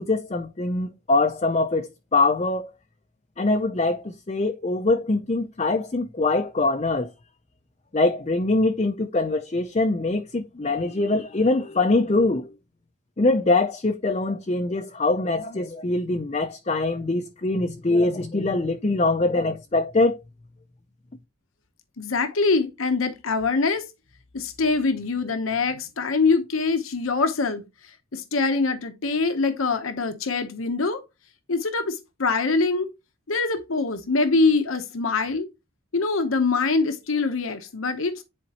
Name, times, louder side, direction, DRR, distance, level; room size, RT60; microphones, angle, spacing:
voice 1, 0.0-2.7 3.4-7.1 7.9-12.5 13.2-20.2, left 2 dB, 30° left, 0.5 m, -23 dB
voice 2, 22.0-23.8 24.3-31.0 31.5-32.9 33.3-35.5 35.9-38.2, left 4 dB, 75° left, 0.9 m, -24 dB
10.5 x 4.4 x 2.9 m
head